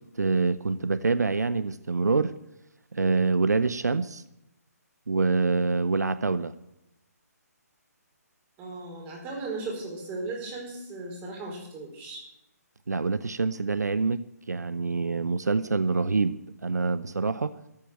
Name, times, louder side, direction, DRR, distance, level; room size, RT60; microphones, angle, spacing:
voice 1, 0.0-2.3 2.9-4.2 5.1-6.5 12.9-14.2 14.5-17.6, right 4 dB, 80° right, 15 dB, 0.7 m, -26 dB
voice 2, 8.6-12.2, right 3 dB, 20° right, -1 dB, 4.8 m, -36 dB
13.5 x 8.7 x 9.2 m, 0.87 s
figure-of-eight pair, 145°, 9 cm